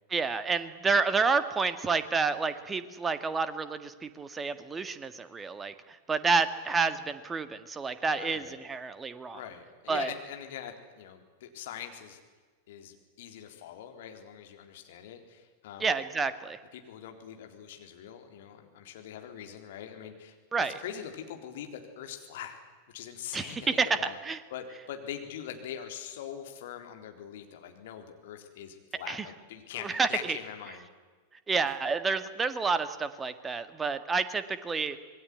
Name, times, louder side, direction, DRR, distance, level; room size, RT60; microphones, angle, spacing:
voice 1, 0.1-9.4 9.9-10.1 15.8-16.6 20.5-20.8 23.3-24.4 29.1-29.3 29.8-30.4 31.5-35.0, right 4 dB, 15° right, 11 dB, 1.8 m, -29 dB
voice 2, 8.1-8.6 9.3-12.2 12.7-15.9 16.7-22.6 22.9-24.2 24.5-30.9, left 9 dB, 55° left, 5 dB, 3.9 m, -43 dB
26.5 x 21.0 x 9.7 m, 1.4 s
figure-of-eight pair, 90°, 0 cm